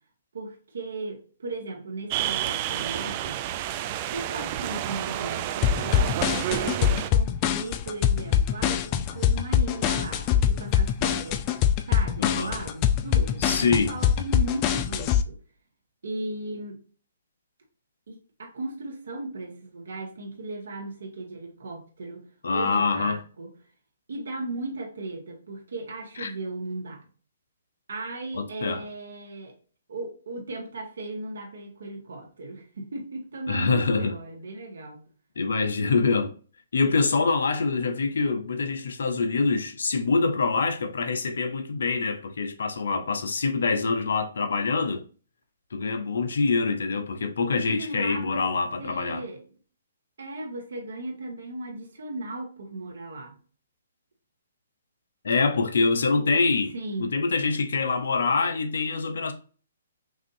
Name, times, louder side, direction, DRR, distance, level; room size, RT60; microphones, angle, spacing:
voice 1, 0.3-3.4 4.1-6.2 6.5-11.4 11.8-15.4 16.0-16.8 18.1-23.6 24.1-27.0 27.9-29.6 29.9-35.1 47.7-48.4 48.8-49.4 50.2-53.3 56.2-56.3 56.7-57.2, right 2 dB, 75° right, 1.8 m, -36 dB
sound 1, 2.1-7.1, right 12 dB, 35° right, 0.4 m, -30 dB
sound 2, 5.6-15.2, left 9 dB, 30° left, 0.4 m, -23 dB
voice 2, 12.2-12.5 13.4-13.9 22.4-23.2 26.2-26.3 28.3-28.8 33.5-34.1 35.4-36.3 36.7-45.0 45.7-49.2 55.2-59.3, left 4 dB, 75° left, 0.9 m, -25 dB
5.9 x 2.7 x 2.7 m
hypercardioid pair, 145°, 0 cm